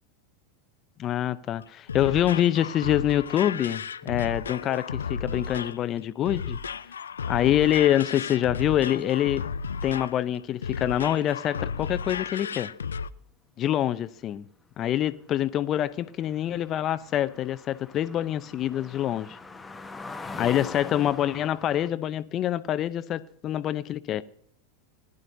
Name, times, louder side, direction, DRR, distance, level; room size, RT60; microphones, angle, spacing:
voice 1, 1.0-6.6 7.3-9.5 9.8-12.7 13.6-14.4 14.8-19.4 20.4-24.2, left 11 dB, 40° left, 0.6 m, -26 dB
sound 1, 1.6-13.1, left 6 dB, 90° left, 0.4 m, -34 dB
sound 2, 16.0-21.9, left 3 dB, 10° left, 1.1 m, -42 dB
19.5 x 11.0 x 2.7 m
hypercardioid pair, 100°, 0 cm